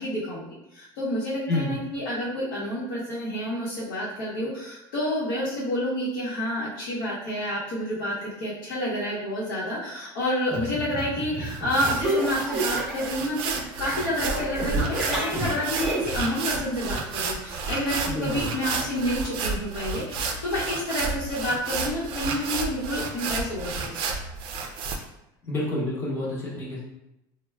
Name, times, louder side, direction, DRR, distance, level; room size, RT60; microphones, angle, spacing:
voice 1, 0.0-24.0, equal, 90° left, -8 dB, 0.9 m, -29 dB
voice 2, 1.5-1.8 18.1-18.5 25.5-26.8, left 2 dB, 20° left, -5 dB, 0.8 m, -28 dB
sound 1, 10.5-13.2 13.4-16.2, right 1 dB, 5° right, 0.6 m, -31 dB
sound 2, 11.5-25.0, right 4 dB, 55° right, 0.4 m, -31 dB
3.3 x 2.1 x 2.2 m, 0.88 s
cardioid pair, 155°, 11 cm